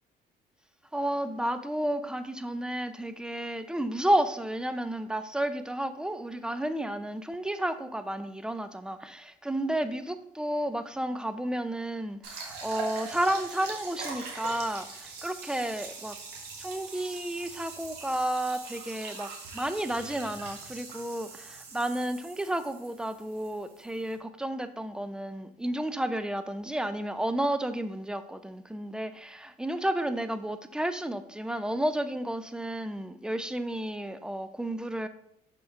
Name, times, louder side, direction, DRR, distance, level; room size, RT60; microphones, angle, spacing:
voice 1, 0.9-16.2 16.6-35.1, right 1 dB, 5° right, 11 dB, 0.4 m, -32 dB
sound 1, 12.2-24.1, right 4 dB, 85° right, 1.7 m, -42 dB
6.3 x 4.5 x 3.6 m, 0.74 s
cardioid pair, 110°, 17 cm